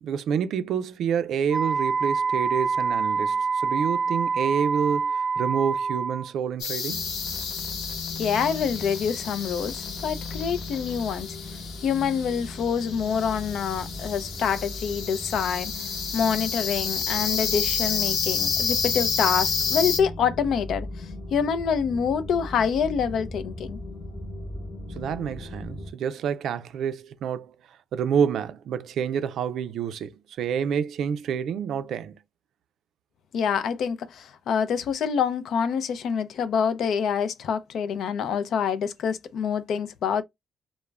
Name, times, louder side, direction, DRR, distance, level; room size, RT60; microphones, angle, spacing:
voice 1, 0.0-7.0 25.0-27.5 27.9-32.2, right 7 dB, 75° right, 0.4 m, -28 dB
Wind instrument woodwind instrument, 1.5-6.3, right 5 dB, 15° right, 0.6 m, -26 dB
sound 1, 6.6-20.0, left 6 dB, 85° left, 0.8 m, -30 dB
sound 2, 6.9-25.9, left 2 dB, 25° left, 0.9 m, -38 dB
voice 2, 8.2-23.8 33.3-40.2, left 7 dB, 70° left, 0.4 m, -26 dB
2.3 x 2.1 x 3.2 m
cardioid pair, 90°, 0 cm